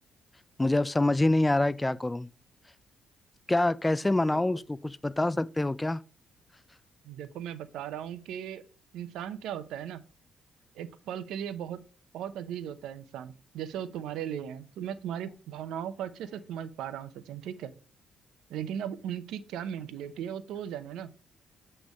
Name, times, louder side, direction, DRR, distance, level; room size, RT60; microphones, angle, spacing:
voice 1, 0.6-2.3 3.5-6.0, left 2 dB, 15° left, 0.3 m, -26 dB
voice 2, 4.2-4.6 7.0-8.6 8.9-10.0 10.7-11.8 12.1-17.7 18.5-21.1, right 9 dB, 85° right, 0.7 m, -37 dB
8.3 x 3.3 x 5.4 m
cardioid pair, 90°, 0 cm